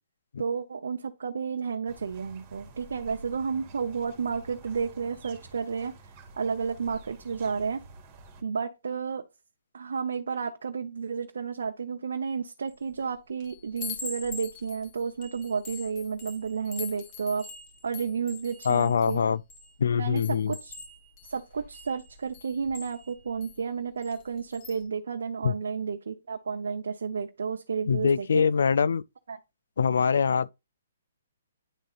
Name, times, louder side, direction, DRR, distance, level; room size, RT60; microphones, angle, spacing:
voice 1, 0.4-5.9 6.4-7.8 8.4-9.2 9.7-17.5 17.8-19.2 19.9-20.8 21.2-28.4 29.3-29.4, right 5 dB, 75° right, 0.7 m, -32 dB
sound 1, 1.9-8.4, right 2 dB, 30° right, 1.9 m, -50 dB
Chime, 12.7-13.0 13.4-19.7 20.2-23.5 24.0-24.2 24.5-24.8, left 5 dB, 30° left, 1.8 m, -43 dB
voice 2, 18.7-19.4 19.8-20.6 25.4-25.5 27.9-29.0 29.8-30.5, left 6 dB, 75° left, 0.3 m, -23 dB
10.0 x 3.8 x 2.5 m
hypercardioid pair, 145°, 0 cm